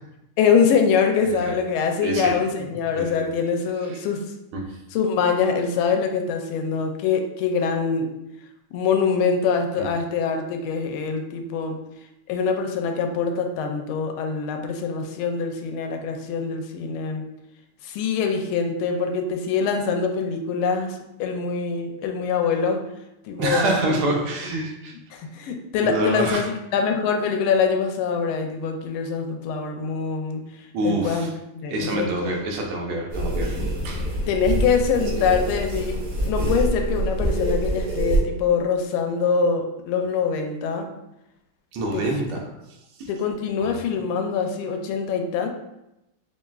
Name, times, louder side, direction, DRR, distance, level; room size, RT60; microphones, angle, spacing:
voice 1, 0.4-4.2 4.9-8.1 8.7-11.8 12.3-17.2 17.8-22.8 23.2-23.7 25.1-26.4 26.7-30.4 30.8-31.3 31.5-32.3 34.3-40.9 41.9-42.1 43.1-45.5, left 5 dB, 80° left, 4 dB, 1.4 m, -24 dB
voice 2, 1.3-1.6 2.0-2.4 2.9-3.3 3.9-4.0 4.5-4.8 9.8-9.9 23.4-24.9 25.8-26.5 30.7-31.3 31.7-34.1 35.1-35.2 41.7-42.4 43.0-43.1 43.6-43.8, right 2 dB, 85° right, 0 dB, 1.6 m, -26 dB
sound 1, 33.1-38.2, right 1 dB, 70° right, 2.0 m, -25 dB
5.6 x 2.5 x 2.3 m, 0.89 s
omnidirectional pair, 2.4 m